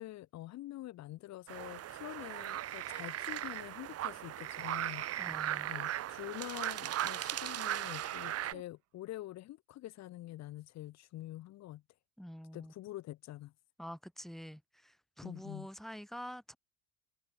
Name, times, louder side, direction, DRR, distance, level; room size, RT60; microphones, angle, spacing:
voice 1, 0.0-5.1 5.7-11.8 12.5-13.5 15.2-15.7, left 15 dB, 60° left, 5.7 m, -46 dB
sound 1, 1.5-8.5, right 12 dB, 50° right, 3.8 m, -38 dB
sound 2, 4.8-8.6, right 29 dB, 75° right, 4.9 m, -58 dB
voice 2, 5.2-5.7 12.2-12.7 13.8-16.6, equal, ahead, 5.7 m, -47 dB
supercardioid pair, 100°, 30 cm